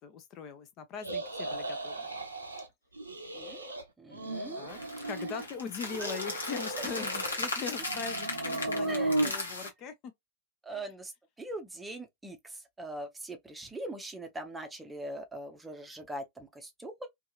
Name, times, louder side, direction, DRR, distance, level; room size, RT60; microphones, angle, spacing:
voice 1, 0.0-2.1 4.5-4.8 5.1-10.1 10.7-10.9, left 6 dB, 35° left, 0.5 m, -41 dB
sound 1, 1.0-2.7 3.0-3.8 4.1-5.5 5.8-7.4 7.8-9.3, right 2 dB, 80° right, 0.5 m, -35 dB
voice 2, 3.3-4.8 6.0-6.1 8.8-9.5 10.6-11.1 11.4-17.1, right 1 dB, 10° right, 0.7 m, -42 dB
sound 2, 4.7-9.7, left 2 dB, 75° left, 0.8 m, -37 dB
2.7 x 2.3 x 2.3 m
figure-of-eight pair, 90°, 0 cm